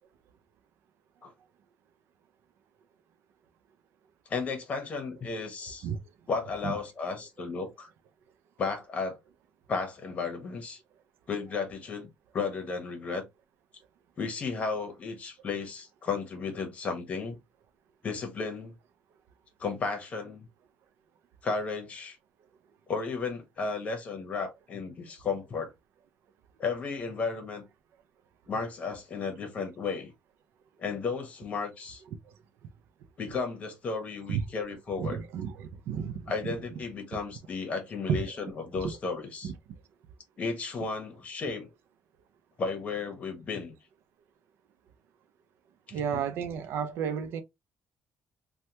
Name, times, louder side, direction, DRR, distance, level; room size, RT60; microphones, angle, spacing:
voice 1, 4.3-5.9 6.3-7.9 8.6-9.2 9.7-10.8 11.3-13.2 14.2-17.4 18.0-18.7 19.6-20.5 21.4-22.2 22.9-25.7 26.6-27.6 28.5-30.1 30.8-32.0 33.2-35.2 36.3-39.5 40.4-41.7 42.6-43.7 45.9-46.0, left 4 dB, 35° left, 1.0 m, -34 dB
voice 2, 35.0-36.3 38.1-38.4 38.8-39.0 39.4-39.5 45.9-47.4, right 7 dB, 70° right, 0.4 m, -32 dB
3.2 x 2.2 x 2.8 m
cardioid pair, 155°, 4 cm